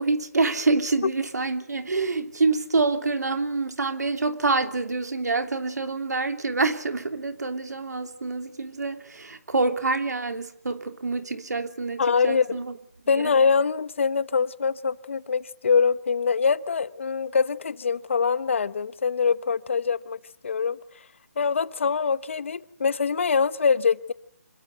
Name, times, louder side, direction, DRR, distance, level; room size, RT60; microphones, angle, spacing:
voice 1, 0.0-12.8 13.1-13.3, right 3 dB, 85° right, 3.1 m, -26 dB
voice 2, 12.0-12.5 13.1-20.8 21.4-24.1, left 5 dB, 50° left, 1.1 m, -24 dB
26.0 x 21.5 x 9.3 m
hypercardioid pair, 170°, 9 cm